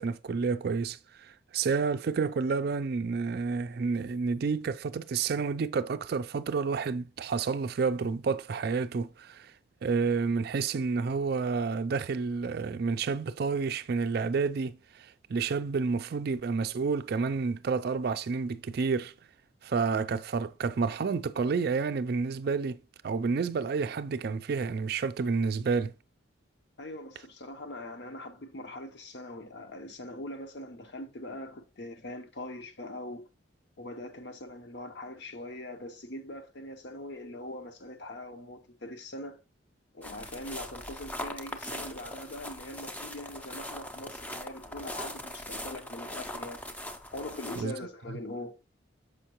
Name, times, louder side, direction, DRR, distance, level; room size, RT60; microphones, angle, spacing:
voice 1, 0.0-9.5 9.8-19.1 19.6-22.8 23.0-25.9 47.6-47.7, right 5 dB, 55° right, 0.4 m, -30 dB
voice 2, 26.8-33.3 33.8-39.4 39.9-46.6 47.1-48.5, left 1 dB, 60° left, 0.8 m, -42 dB
sound 1, 40.0-47.6, left 1 dB, 10° left, 0.5 m, -40 dB
6.5 x 5.5 x 2.9 m
head